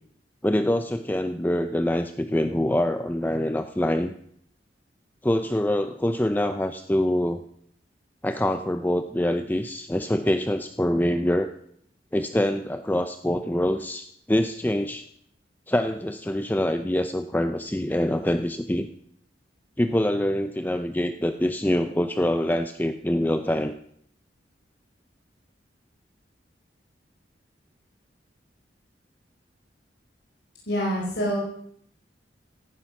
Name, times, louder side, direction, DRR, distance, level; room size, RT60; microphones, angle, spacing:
voice 1, 0.4-4.1 5.2-7.4 8.2-11.5 12.1-15.1 15.7-18.9 19.8-23.7, left 1 dB, 10° left, 8 dB, 0.6 m, -25 dB
voice 2, 30.7-31.4, equal, 70° left, -3 dB, 4.6 m, -26 dB
16.0 x 14.5 x 5.9 m, 0.67 s
head